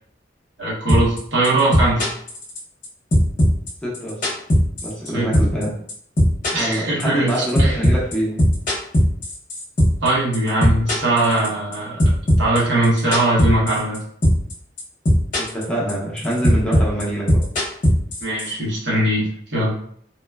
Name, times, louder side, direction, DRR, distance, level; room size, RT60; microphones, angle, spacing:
voice 1, 0.6-2.1 5.1-5.4 6.5-7.8 10.0-12.0 12.4-14.0 18.2-19.7, right 2 dB, 80° right, -6 dB, 1.0 m, -20 dB
sound 1, 0.9-1.2 1.4-2.9 3.1-5.1 5.3-5.6 5.9-10.1 10.3-11.7 12.0-14.0 14.2-14.5 14.8-15.6 15.9-18.5, equal, 50° left, 0.7 m, -17 dB
voice 2, 3.8-4.2 4.8-5.7 6.5-8.4 15.4-17.4, right 1 dB, 5° left, -6 dB, 0.6 m, -25 dB
3.0 x 2.1 x 2.2 m, 0.64 s
head